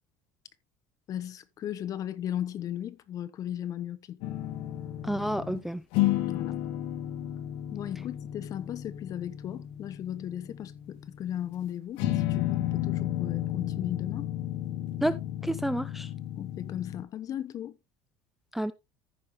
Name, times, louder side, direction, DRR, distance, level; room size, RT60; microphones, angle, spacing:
voice 1, 1.1-4.2 6.2-6.6 7.7-14.3 16.3-17.8, left 11 dB, 40° left, 0.9 m, -36 dB
Acoustic guitar thrum, 4.2-5.6 5.9-11.7 12.0-17.0, left 13 dB, 80° left, 1.4 m, -32 dB
voice 2, 5.0-5.8 15.0-15.2 15.4-16.1 18.5-18.7, right 1 dB, 5° right, 0.4 m, -29 dB
14.0 x 5.4 x 3.0 m
cardioid pair, 145°, 9 cm